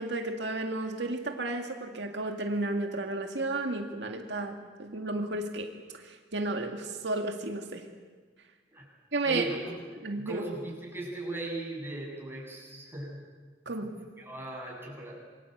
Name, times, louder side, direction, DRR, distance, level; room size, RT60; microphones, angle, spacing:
voice 1, 0.0-7.9 9.1-9.4 10.0-10.4 13.7-13.9, right 2 dB, 80° right, 3 dB, 2.1 m, -33 dB
voice 2, 9.2-9.8 10.2-13.2 13.8-13.9 14.2-15.2, right 2 dB, 15° right, -2 dB, 7.6 m, -38 dB
27.0 x 23.0 x 8.0 m, 1.5 s
head